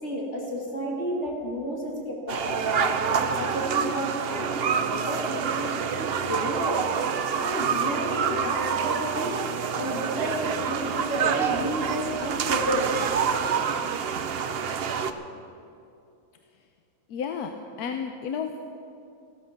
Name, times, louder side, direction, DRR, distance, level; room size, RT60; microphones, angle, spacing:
voice 1, 0.0-5.7 6.0-6.8 7.1-9.3 9.7-13.3, equal, 40° left, -2 dB, 2.7 m, -31 dB
sound 1, 2.3-15.1, right 7 dB, 75° right, 0.5 m, -27 dB
voice 2, 17.1-18.6, left 6 dB, 65° left, 5 dB, 1.2 m, -32 dB
15.0 x 13.5 x 5.9 m, 2.6 s
omnidirectional pair, 1.9 m